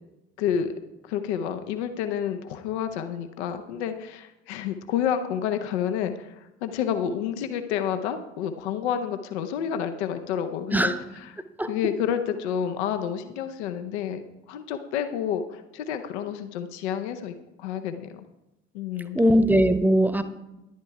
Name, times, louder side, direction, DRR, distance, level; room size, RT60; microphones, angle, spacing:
voice 1, 0.4-0.7 1.0-18.2 18.7-19.2, left 8 dB, 70° left, 8 dB, 0.8 m, -29 dB
voice 2, 19.1-20.2, equal, 5° right, 11 dB, 0.9 m, -20 dB
11.0 x 10.5 x 4.7 m, 0.96 s
figure-of-eight pair, 50°, 34 cm